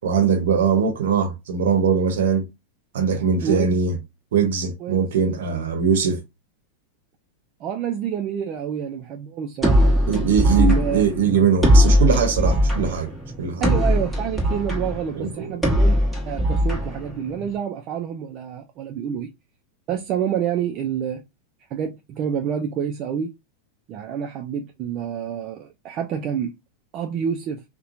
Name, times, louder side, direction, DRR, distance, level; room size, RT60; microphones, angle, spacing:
voice 1, 0.0-2.5 2.9-3.9 4.3-6.2 10.1-13.1 13.4-13.7 15.1-15.6, right 6 dB, 80° right, 0.7 m, -21 dB
voice 2, 3.4-3.8 4.8-5.1 7.6-10.0 10.6-11.1 13.6-16.0 16.3-19.3 19.9-21.2 21.7-23.3 23.9-26.5 26.9-27.6, right 8 dB, 40° right, 0.3 m, -28 dB
sound 1, 9.6-17.5, equal, ahead, 1.0 m, -20 dB
2.9 x 2.1 x 2.4 m
supercardioid pair, 135°, 0 cm